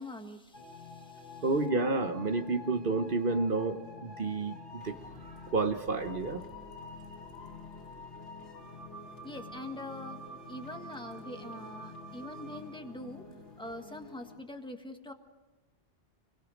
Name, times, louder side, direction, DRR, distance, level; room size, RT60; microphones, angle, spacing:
voice 1, 0.0-1.5 9.2-10.2 10.5-13.2 13.6-15.1, left 1 dB, 5° left, 5 dB, 1.5 m, -44 dB
sound 1, 0.5-14.4, left 2 dB, 85° left, 2.8 m, -47 dB
voice 2, 1.4-4.9 5.2-6.4, right 3 dB, 50° right, 8 dB, 1.2 m, -30 dB
28.0 x 22.0 x 5.2 m, 1.1 s
omnidirectional pair, 1.1 m